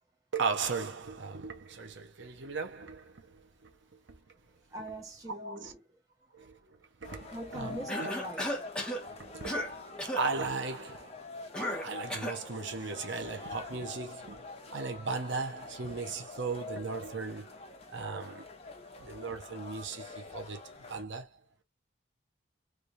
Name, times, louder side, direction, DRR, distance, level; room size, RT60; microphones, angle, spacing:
voice 1, 0.3-3.7 4.1-4.2 5.4-5.7 6.3-6.6 7.0-8.1 9.0-9.9 10.2-11.2 11.6-17.5 17.9-18.5 19.0-21.4, right 4 dB, 65° right, 0.7 m, -37 dB
voice 2, 4.7-5.8 6.6-6.7 7.3-8.5, equal, 15° right, 1.0 m, -42 dB
sound 1, 7.0-21.0, left 3 dB, 30° left, 0.8 m, -46 dB
Cough, 7.9-9.0 9.4-9.7 10.0-10.3 11.5-12.4, equal, 5° left, 0.9 m, -34 dB
3.2 x 3.2 x 2.5 m
head